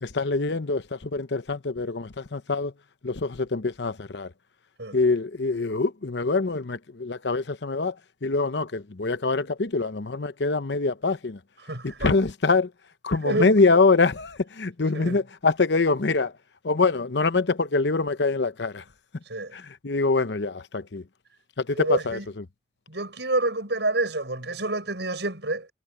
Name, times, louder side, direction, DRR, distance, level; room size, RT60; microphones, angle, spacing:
voice 1, 0.0-2.7 3.0-4.3 4.9-7.9 8.2-11.4 11.8-12.7 13.0-16.3 16.6-18.8 19.5-21.0 21.6-22.2, left 3 dB, 80° left, 0.9 m, -24 dB
voice 2, 11.6-12.2 13.2-13.5 14.9-15.2 19.3-19.6 21.7-22.3 22.9-25.7, right 2 dB, 75° right, 6.5 m, -28 dB
head